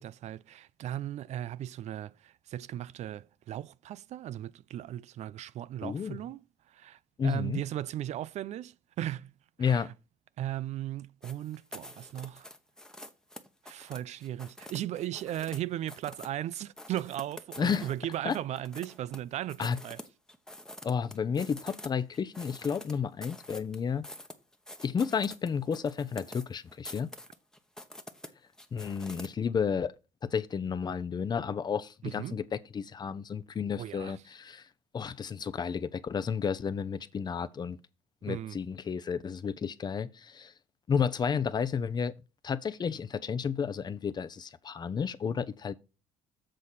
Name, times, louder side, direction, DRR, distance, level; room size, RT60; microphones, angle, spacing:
voice 1, 0.0-6.4 6.7-9.3 9.6-9.9 10.4-12.5 13.6-20.0 32.0-32.4 33.7-34.2 38.3-38.6, right 12 dB, 55° right, 0.4 m, -37 dB
voice 2, 5.8-6.2 7.2-7.6 9.6-9.9 17.6-17.9 18.2-18.4 19.6-19.8 20.8-24.0 24.8-27.1 28.7-29.9 30.2-34.6 34.9-37.8 38.2-40.5 40.9-42.1 42.4-45.7, left 6 dB, 30° left, 0.6 m, -32 dB
sound 1, 11.2-15.6 15.9-16.4 16.8-19.2 19.5-21.9 22.1-29.3, left 1 dB, 5° left, 0.9 m, -47 dB
7.6 x 4.1 x 6.5 m
cardioid pair, 115°, 14 cm